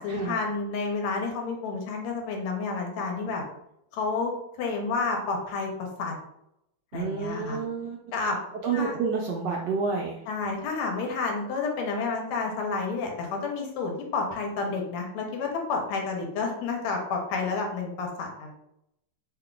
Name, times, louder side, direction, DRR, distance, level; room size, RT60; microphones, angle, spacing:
voice 1, 0.0-3.4 3.9-4.3 4.6-5.7 6.0-6.2 6.9-7.6 8.1-8.4 8.7-9.0 10.3-18.5, left 4 dB, 90° left, 2 dB, 1.6 m, -30 dB
voice 2, 6.9-8.0 8.6-10.2, right 5 dB, 80° right, -1 dB, 1.0 m, -29 dB
3.5 x 2.2 x 3.7 m, 0.81 s
omnidirectional pair, 2.4 m